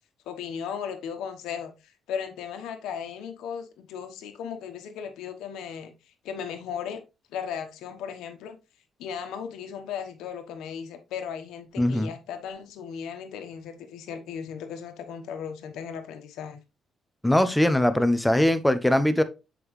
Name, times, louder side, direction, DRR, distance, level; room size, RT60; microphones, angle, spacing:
voice 1, 0.3-5.9 6.2-7.0 7.3-8.6 9.0-16.6, left 7 dB, 90° left, 1.1 m, -36 dB
voice 2, 11.8-12.1 17.2-19.2, left 1 dB, 5° left, 0.7 m, -21 dB
7.0 x 4.9 x 3.1 m
cardioid pair, 90°, 0 cm